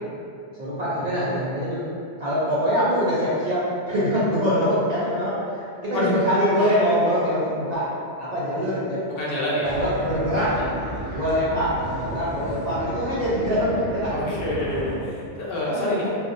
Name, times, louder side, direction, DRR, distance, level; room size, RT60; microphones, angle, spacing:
voice 1, 0.5-1.9 2.2-3.6 3.9-7.8 8.2-9.0 9.4-10.5 11.1-14.4 15.0-15.1 15.6-16.1, equal, 55° right, -10 dB, 0.5 m, -24 dB
voice 2, 6.5-6.9 9.2-9.8 10.5-10.7 14.1-16.1, left 1 dB, 65° left, -6 dB, 0.8 m, -28 dB
sound 1, 9.6-15.0, right 1 dB, 90° right, 0.9 m, -33 dB
2.4 x 2.1 x 2.5 m, 2.5 s
omnidirectional pair, 1.1 m